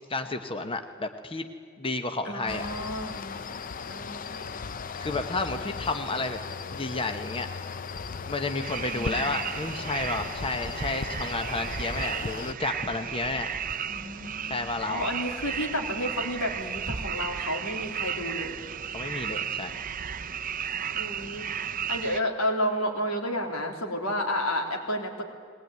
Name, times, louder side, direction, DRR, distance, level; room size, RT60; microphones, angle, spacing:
voice 1, 0.1-1.5 1.8-2.7 4.9-6.4 6.7-7.5 8.3-13.5 14.5-15.1 18.9-19.8, left 3 dB, 25° left, 7 dB, 1.0 m, -31 dB
voice 2, 2.2-3.6 3.9-4.5 5.4-5.7 8.9-9.4 13.9-18.6 20.9-21.5 21.9-25.2, equal, 90° left, 2 dB, 3.4 m, -31 dB
sound 1, 2.5-12.5, left 5 dB, 40° left, 0.6 m, -37 dB
sound 2, 8.6-22.2, right 7 dB, 40° right, 0.6 m, -34 dB
20.5 x 19.5 x 9.4 m, 2.1 s
head